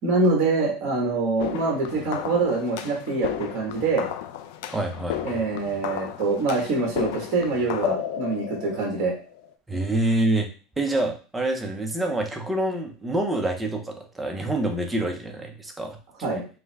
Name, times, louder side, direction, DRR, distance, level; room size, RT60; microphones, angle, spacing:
voice 1, 0.0-4.1 5.2-9.1 16.2-16.4, right 3 dB, 40° right, -1 dB, 1.5 m, -25 dB
sound 1, 1.4-9.5, left 11 dB, 60° left, 0.4 m, -34 dB
voice 2, 4.7-5.4 9.7-10.5 10.8-16.0, right 1 dB, 5° right, 3 dB, 0.5 m, -26 dB
5.5 x 2.1 x 3.4 m, 0.36 s
cardioid pair, 175°, 0 cm